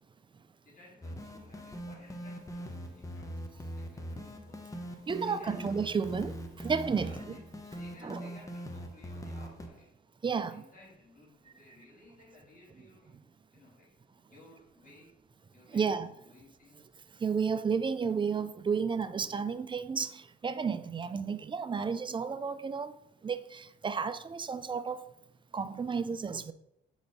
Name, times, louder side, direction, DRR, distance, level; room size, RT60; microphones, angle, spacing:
voice 1, 0.6-5.0 5.2-6.1 7.0-9.9 10.3-13.1 13.5-13.9 14.3-15.1 15.5-16.0 16.3-16.8, left 2 dB, 45° left, 2.5 m, -57 dB
sound 1, 1.0-9.7, equal, 15° left, 0.9 m, -42 dB
voice 2, 5.1-6.3 6.6-7.4 8.0-8.2 10.2-10.6 15.7-16.1 17.2-22.9 23.2-25.1 25.5-26.5, right 5 dB, 25° right, 0.4 m, -32 dB
7.7 x 4.1 x 3.6 m
cardioid pair, 90°, 20 cm